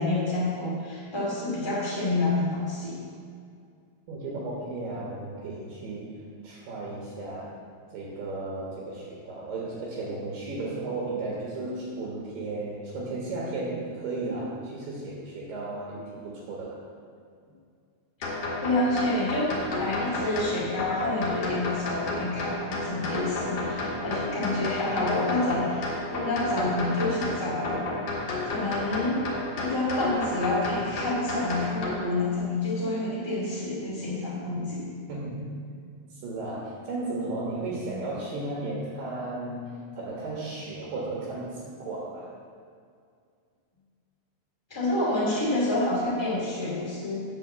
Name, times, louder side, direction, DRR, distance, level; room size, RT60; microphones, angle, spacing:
voice 1, 0.0-3.0 18.6-27.9 28.4-29.3 29.5-34.9 44.7-47.2, left 2 dB, 30° left, -7 dB, 0.5 m, -28 dB
voice 2, 4.1-7.5 7.9-16.8 35.1-35.4 36.1-42.3, right 2 dB, 65° right, -3 dB, 3.0 m, -34 dB
sound 1, 18.2-31.9, left 2 dB, 55° left, 1.9 m, -32 dB
9.4 x 5.7 x 7.1 m, 2.2 s
omnidirectional pair, 5.5 m